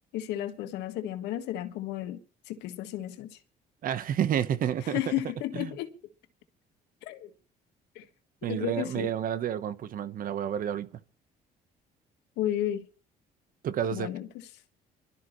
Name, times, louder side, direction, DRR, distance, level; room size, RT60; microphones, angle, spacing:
voice 1, 0.1-2.2 2.5-3.4 4.8-5.9 7.0-7.3 7.9-8.1 8.4-9.1 12.4-12.9 13.9-14.5, left 12 dB, 90° left, 1.6 m, -33 dB
voice 2, 3.8-5.0 5.6-5.7 8.4-10.9 13.6-14.1, right 9 dB, 55° right, 1.1 m, -30 dB
24.5 x 12.5 x 3.1 m
cardioid pair, 110°, 17 cm